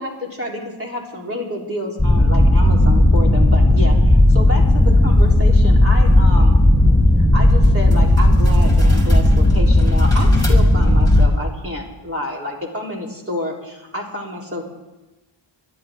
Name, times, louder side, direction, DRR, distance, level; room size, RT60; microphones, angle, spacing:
voice 1, 0.0-6.6 7.3-14.6, left 1 dB, 25° right, -2 dB, 3.8 m, -29 dB
sound 1, 2.0-11.2, left 1 dB, 10° left, 3.4 m, -13 dB
24.5 x 11.0 x 3.8 m, 1.1 s
wide cardioid pair, 70°, 49 cm